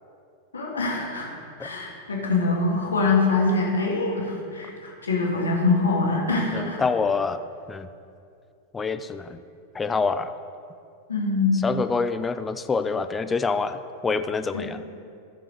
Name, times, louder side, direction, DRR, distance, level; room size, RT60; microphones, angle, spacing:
voice 1, 0.5-1.3 1.6-6.8 11.1-11.6 14.5-14.7, left 3 dB, 70° left, -2 dB, 1.9 m, -24 dB
voice 2, 6.5-7.4 7.7-7.9 8.7-9.4 9.7-10.3 11.6-14.8, left 4 dB, 15° left, 11 dB, 0.4 m, -26 dB
14.0 x 6.8 x 3.3 m, 2.5 s
figure-of-eight pair, 90°, 0 cm